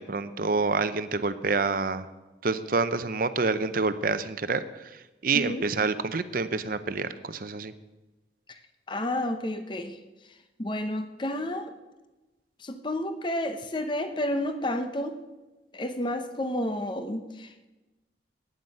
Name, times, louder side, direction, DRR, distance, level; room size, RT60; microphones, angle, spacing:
voice 1, 0.0-2.1 2.4-7.7, right 4 dB, 50° right, 12 dB, 0.6 m, -28 dB
voice 2, 5.3-5.7 8.5-8.6 8.9-10.0 10.3-11.7 12.6-15.2 15.7-17.6, left 1 dB, 25° left, 8 dB, 0.7 m, -31 dB
9.5 x 9.4 x 7.7 m, 1.1 s
head